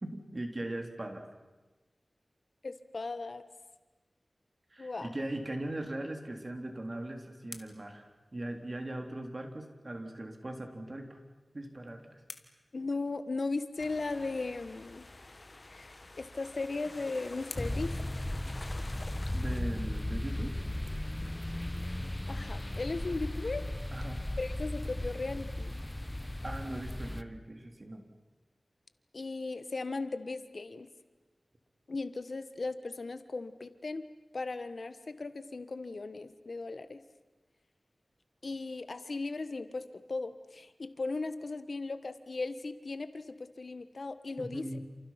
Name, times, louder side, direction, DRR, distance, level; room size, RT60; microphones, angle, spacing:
voice 1, 0.0-1.2 4.7-11.2 11.5-12.2 19.3-20.5 23.9-24.2 26.4-28.0 44.4-44.8, right 1 dB, 45° right, 4 dB, 3.7 m, -39 dB
voice 2, 2.6-3.4 4.8-5.1 12.7-15.1 15.7-18.2 22.3-23.7 24.4-25.7 29.1-30.9 31.9-34.0 34.3-37.0 38.4-44.8, left 3 dB, 70° left, 11 dB, 1.4 m, -37 dB
sound 1, 6.6-9.1 11.2-13.6 15.9-19.0, left 4 dB, 90° left, 1.8 m, -54 dB
sound 2, 13.8-19.6, left 2 dB, 45° left, 1.4 m, -49 dB
sound 3, 17.6-27.2, left 1 dB, 20° left, 1.0 m, -36 dB
30.0 x 28.5 x 6.0 m, 1.2 s
wide cardioid pair, 50°, 0 cm